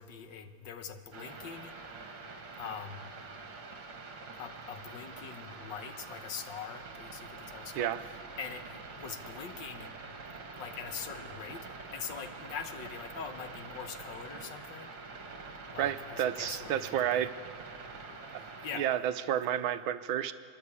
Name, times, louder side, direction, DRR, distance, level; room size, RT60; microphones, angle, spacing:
voice 1, 0.0-1.7 2.6-3.1 4.4-7.9 8.4-9.9 10.6-14.9 15.7-17.3 18.6-18.9, left 7 dB, 70° left, 8 dB, 1.7 m, -43 dB
sound 1, 1.1-18.8, right 4 dB, 55° right, 2.4 m, -46 dB
voice 2, 15.8-17.4 18.3-18.4 18.8-20.3, right 10 dB, 80° right, 11 dB, 1.5 m, -31 dB
30.0 x 11.0 x 8.4 m, 2.3 s
omnidirectional pair, 2.2 m